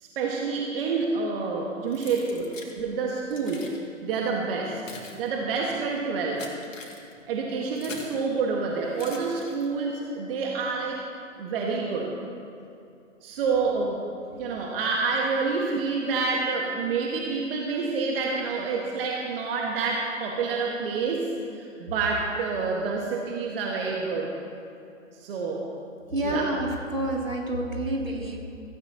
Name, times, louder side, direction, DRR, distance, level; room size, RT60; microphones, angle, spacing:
voice 1, 0.0-2.4 2.8-3.7 4.0-4.8 5.1-6.4 7.3-11.0 11.4-12.1 13.2-14.0 14.4-24.3 25.2-25.8 26.2-26.5, right 4 dB, 45° right, -1 dB, 1.7 m, -28 dB
Keys jangling, 1.9-2.8 3.3-3.8 4.5-8.2 8.9-9.9, left 3 dB, 75° left, 2.4 m, -43 dB
voice 2, 26.1-28.4, right 1 dB, 90° right, -1 dB, 2.9 m, -29 dB
16.5 x 15.0 x 3.0 m, 2.6 s
figure-of-eight pair, 120°, 39 cm